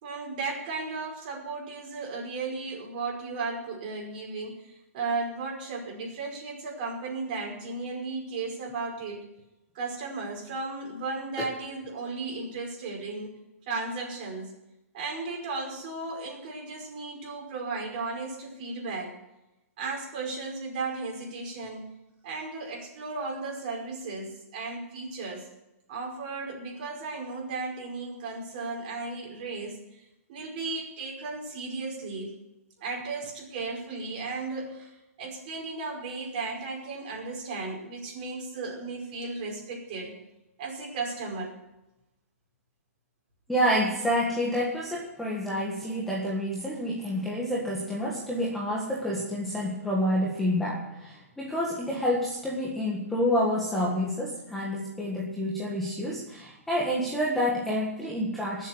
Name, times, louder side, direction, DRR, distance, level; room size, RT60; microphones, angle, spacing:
voice 1, 0.0-9.3 9.7-13.3 13.7-14.5 14.9-19.1 19.8-21.9 22.2-25.5 25.9-30.0 30.3-32.3 32.8-34.9 35.2-40.1 40.6-41.5, right 3 dB, 35° right, -1 dB, 5.2 m, -35 dB
voice 2, 43.5-58.7, equal, ahead, -5 dB, 1.7 m, -28 dB
20.0 x 7.7 x 8.1 m, 0.96 s
hypercardioid pair, 170°, 8 cm